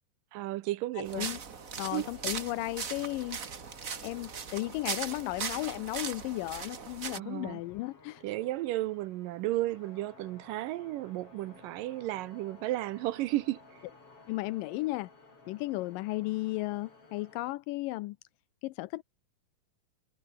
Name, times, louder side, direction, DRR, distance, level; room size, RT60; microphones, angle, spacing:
voice 1, 0.3-1.3 1.9-2.1 7.2-7.6 8.2-13.8, right 16 dB, 80° right, 2.3 m, -33 dB
voice 2, 1.0-1.4 1.8-3.4 4.0-8.2 14.3-15.1 15.5-18.2 18.6-19.0, left 19 dB, 85° left, 2.3 m, -34 dB
sound 1, 1.0-7.2, right 6 dB, 50° right, 1.0 m, -39 dB
sound 2, 1.1-17.5, left 3 dB, 40° left, 6.8 m, -56 dB
omnidirectional pair, 4.0 m